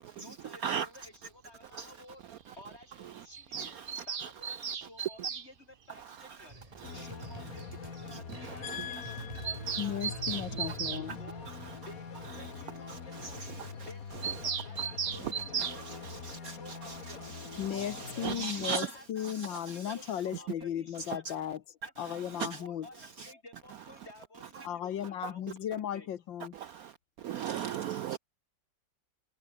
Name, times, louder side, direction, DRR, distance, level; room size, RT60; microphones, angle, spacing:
voice 1, 0.2-2.2 2.6-17.4 17.7-21.2 21.8-26.1, left 2 dB, 35° left, 5.7 m, -54 dB
Bird vocalization bird call bird song, 3.3-5.5 6.9-7.0 7.2-7.3 7.6-7.7 8.0-8.1 8.3-8.4 8.7-8.8 9.1-11.0 14.2-15.8, right 7 dB, 40° right, 0.8 m, -36 dB
sound 1, 6.5-13.0, right 1 dB, 20° right, 3.8 m, -48 dB
sound 2, 6.8-18.3, left 6 dB, 50° left, 2.2 m, -44 dB
voice 2, 8.6-11.2 17.6-22.9 24.6-26.5, left 10 dB, 85° left, 1.9 m, -36 dB
voice 3, 18.2-18.9 26.6-26.9 27.2-28.2, right 8 dB, 70° right, 0.9 m, -33 dB
omnidirectional pair, 2.0 m